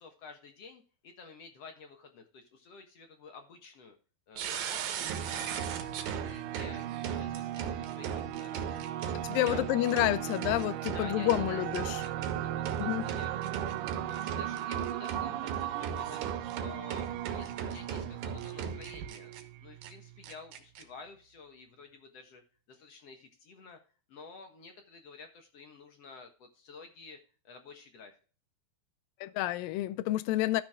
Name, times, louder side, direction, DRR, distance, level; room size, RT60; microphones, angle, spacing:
voice 1, 0.0-4.0 4.3-5.0 5.3-5.8 6.2-9.0 9.3-10.1 10.9-19.3 19.6-22.4 22.7-23.8 24.1-27.2 27.4-28.1, left 4 dB, 60° left, 1.8 m, -51 dB
sound 1, 4.4-19.4 19.8-19.9 20.2-20.8, right 7 dB, 70° right, 2.7 m, -39 dB
sound 2, 5.0-20.3, right 13 dB, 85° right, 2.0 m, -37 dB
voice 2, 9.3-12.0 12.8-13.1 29.2-30.6, left 15 dB, 85° left, 2.0 m, -29 dB
13.0 x 6.2 x 3.6 m
omnidirectional pair, 4.5 m